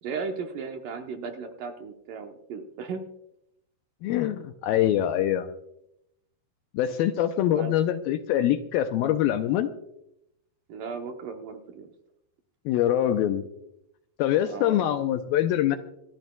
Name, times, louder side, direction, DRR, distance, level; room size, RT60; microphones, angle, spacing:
voice 1, 0.0-3.0 7.5-7.7 10.7-11.9 14.4-14.9, right 5 dB, 70° right, 4 dB, 2.3 m, -36 dB
voice 2, 4.0-5.5 6.7-9.7 12.7-13.5 14.2-15.8, left 11 dB, 80° left, 8 dB, 2.2 m, -24 dB
26.0 x 13.5 x 2.3 m, 0.81 s
omnidirectional pair, 4.7 m